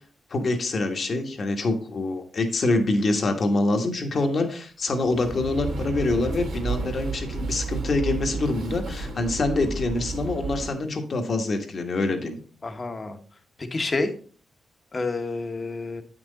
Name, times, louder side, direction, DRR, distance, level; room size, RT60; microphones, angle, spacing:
voice 1, 0.3-12.4, left 2 dB, 50° left, 5 dB, 1.5 m, -25 dB
sound 1, 4.9-10.7, right 3 dB, 75° right, 2.4 m, -32 dB
voice 2, 12.6-13.2 13.6-14.1 14.9-16.0, left 3 dB, 35° left, 7 dB, 1.2 m, -29 dB
8.6 x 6.1 x 4.1 m, 0.42 s
cardioid pair, 95°, 0 cm